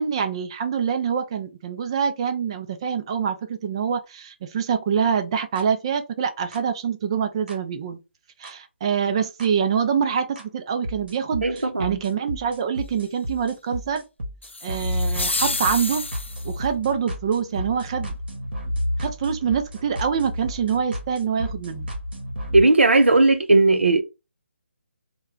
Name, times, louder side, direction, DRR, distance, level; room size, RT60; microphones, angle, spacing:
voice 1, 0.0-8.0 8.4-14.0 14.6-16.0 16.4-18.1 19.0-21.9, right 7 dB, 25° right, 0.5 m, -25 dB
sound 1, 5.6-5.7 6.5-6.6 7.5-7.6 8.4-8.5 9.4-9.5 10.4-10.5 10.8-22.6, left 1 dB, 55° right, 1.0 m, -32 dB
voice 2, 11.4-12.0 22.5-24.0, right 2 dB, 70° right, 0.8 m, -17 dB
sound 2, 14.4-16.6, left 3 dB, 80° left, 0.5 m, -29 dB
3.2 x 2.3 x 3.5 m
figure-of-eight pair, 145°, 6 cm